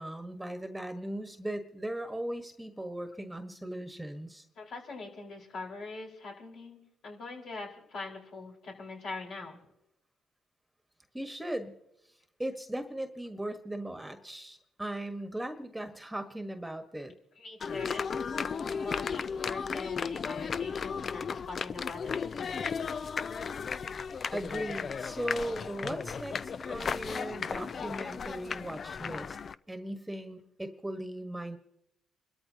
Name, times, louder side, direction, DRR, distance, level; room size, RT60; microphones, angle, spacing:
voice 1, 0.0-4.4 11.1-11.7 12.4-17.1 24.3-29.4 29.7-31.6, right 1 dB, 5° right, 6 dB, 1.5 m, -38 dB
voice 2, 4.5-9.6 17.4-18.2 18.6-22.3, left 3 dB, 65° left, -1 dB, 5.0 m, -43 dB
sound 1, 17.6-29.5, left 6 dB, 45° left, 0.4 m, -35 dB
29.0 x 13.5 x 3.0 m, 0.84 s
cardioid pair, 80°, 0 cm